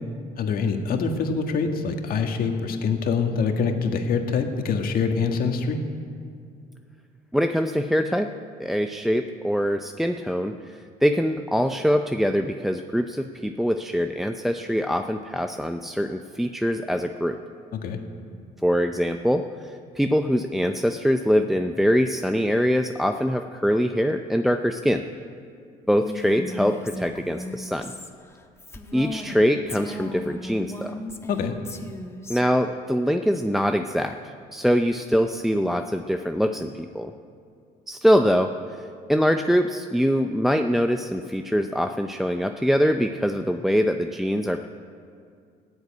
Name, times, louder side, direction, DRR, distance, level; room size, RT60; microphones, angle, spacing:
voice 1, 0.4-5.8 17.7-18.0 31.3-31.5, left 5 dB, 60° left, 4 dB, 1.7 m, -25 dB
voice 2, 7.3-8.3 8.6-17.4 18.6-25.0 25.9-27.9 28.9-31.0 32.3-37.1 37.9-38.5 39.1-44.7, equal, ahead, 6 dB, 0.5 m, -23 dB
Female speech woman speaking, 25.9-29.4 29.7-32.4, left 1 dB, 15° left, 1.3 m, -36 dB
15.0 x 8.1 x 9.5 m, 2.3 s
cardioid pair, 110°, 17 cm